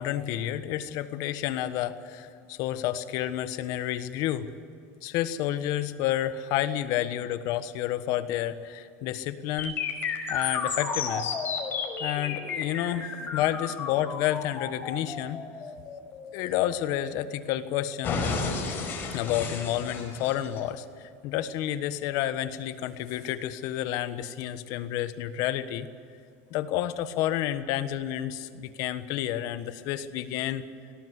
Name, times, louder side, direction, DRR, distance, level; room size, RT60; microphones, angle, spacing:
voice 1, 0.0-4.5 5.0-9.8 10.3-11.3 12.0-15.4 16.3-18.3 19.1-25.9 26.5-30.6, left 12 dB, 55° left, 12 dB, 1.3 m, -30 dB
sound 1, 9.6-17.5 18.0-20.6, left 5 dB, 30° left, 5.2 m, -32 dB
21.5 x 18.0 x 8.2 m, 2.5 s
supercardioid pair, 145°, 7 cm